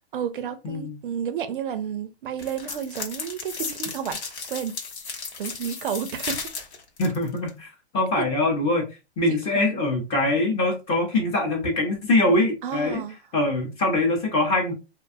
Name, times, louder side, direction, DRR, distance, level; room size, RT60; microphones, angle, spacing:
voice 1, 0.1-4.2 4.5-4.8 5.4-6.4 8.1-8.2 9.3-9.9 12.6-13.2, right 8 dB, 50° right, 0.4 m, -31 dB
voice 2, 0.6-1.0 7.0-8.9 9.2-13.0 13.3-14.7, left 2 dB, 15° left, 0.7 m, -23 dB
sound 1, 2.4-7.5, left 5 dB, 75° left, 1.1 m, -34 dB
2.5 x 2.2 x 2.6 m
hypercardioid pair, 135°, 33 cm